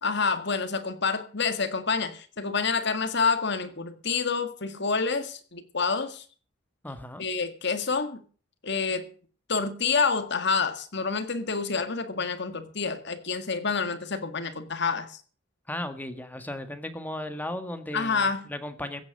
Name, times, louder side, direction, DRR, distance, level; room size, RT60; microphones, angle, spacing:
voice 1, 0.0-6.2 7.2-8.2 8.6-9.1 9.5-15.2 17.9-18.4, left 5 dB, 60° left, 9 dB, 1.9 m, -28 dB
voice 2, 6.8-7.2 15.7-19.0, left 1 dB, 10° left, 8 dB, 1.6 m, -36 dB
15.5 x 8.9 x 6.6 m, 0.41 s
head